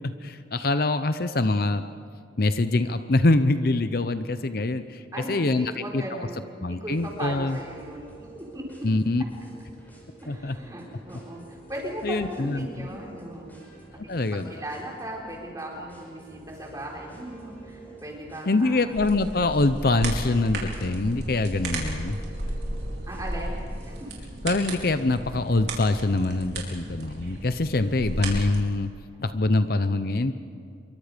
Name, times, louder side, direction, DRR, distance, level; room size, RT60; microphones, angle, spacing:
voice 1, 0.2-1.8 2.4-5.0 5.3-6.0 6.6-7.6 8.8-9.2 10.3-10.6 12.0-12.9 14.0-14.5 18.5-22.2 24.4-28.9 29.2-30.3, left 2 dB, 55° left, 11 dB, 0.7 m, -24 dB
voice 2, 5.1-8.0 8.3-8.6 10.2-13.6 14.0-19.0 23.1-24.1, right 1 dB, 20° right, -2 dB, 4.8 m, -37 dB
sound 1, 6.9-24.1, right 2 dB, 10° left, 5.1 m, -48 dB
sound 2, 19.0-28.6, right 1 dB, 65° right, 4.6 m, -34 dB
27.0 x 24.0 x 5.2 m, 2.3 s
head